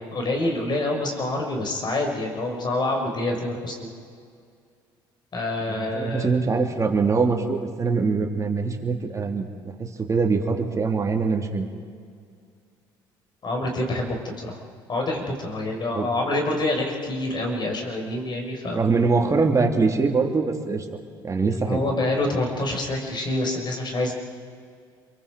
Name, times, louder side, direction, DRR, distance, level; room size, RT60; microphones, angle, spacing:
voice 1, 0.0-3.9 5.3-6.3 13.4-14.6 14.9-18.8 21.7-24.1, left 2 dB, 40° left, 2 dB, 5.7 m, -26 dB
voice 2, 5.7-11.7 15.9-16.1 18.7-20.9 21.2-21.9, right 4 dB, 30° right, 3 dB, 3.1 m, -23 dB
28.5 x 23.0 x 5.2 m, 2.2 s
hypercardioid pair, 65°, 11 cm